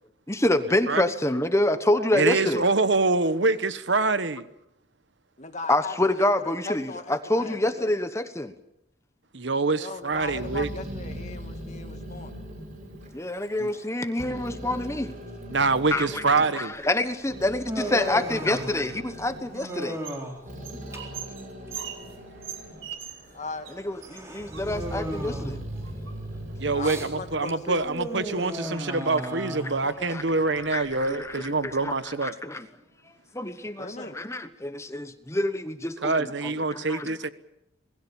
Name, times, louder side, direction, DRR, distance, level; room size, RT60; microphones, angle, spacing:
voice 1, 0.3-2.6 5.7-8.5 13.1-15.1 15.9-16.2 16.5-20.0 23.8-25.6 29.8-30.2 30.6-32.7 33.3-36.3 36.7-37.1, left 1 dB, 15° left, 10 dB, 1.1 m, -27 dB
voice 2, 1.7-4.5 9.3-10.7 13.6-13.7 15.5-16.8 26.6-32.3 36.0-37.3, right 3 dB, 65° right, 13 dB, 1.2 m, -25 dB
voice 3, 5.4-7.9 9.7-12.4 18.0-18.5 23.3-23.7 26.7-27.9 33.8-34.2, left 3 dB, 35° left, 6 dB, 2.2 m, -38 dB
Growling, 10.1-13.9 14.2-16.5 17.1-22.9 23.2-23.9 24.4-28.1, equal, 40° right, 6.2 m, -40 dB
Human voice, 16.7-31.9, equal, 15° right, 4.0 m, -37 dB
sound 1, 19.1-20.3 20.6-23.4 23.6-23.8 24.0-25.1 25.8-26.5 27.6-27.7 28.0-28.5 29.0-29.2 29.6-29.7 30.2-31.0, right 9 dB, 85° right, 4.8 m, -42 dB
27.5 x 20.0 x 7.2 m, 0.81 s
head